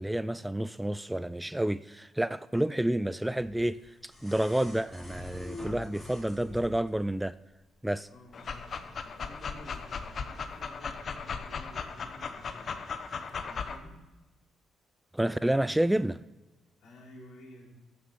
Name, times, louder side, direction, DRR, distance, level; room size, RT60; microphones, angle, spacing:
voice 1, 0.0-7.3 7.8-8.1 15.1-16.2, right 1 dB, 5° right, 0.3 m, -29 dB
sound 1, 3.2-7.0 8.3-8.4, left 1 dB, 20° left, 3.2 m, -45 dB
voice 2, 8.0-12.8 13.2-14.0 16.8-17.8, left 1 dB, 70° left, 4.2 m, -52 dB
Dog, 8.3-13.8, left 5 dB, 50° left, 0.9 m, -37 dB
14.5 x 6.8 x 5.5 m
cardioid pair, 90°, 0 cm